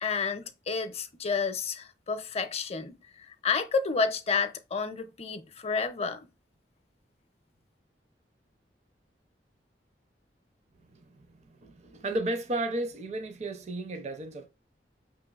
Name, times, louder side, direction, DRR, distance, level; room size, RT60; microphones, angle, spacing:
voice 1, 0.0-6.3, left 5 dB, 35° left, 0.6 m, -30 dB
voice 2, 10.9-14.5, right 2 dB, 40° right, 0.5 m, -34 dB
5.7 x 3.1 x 2.3 m
head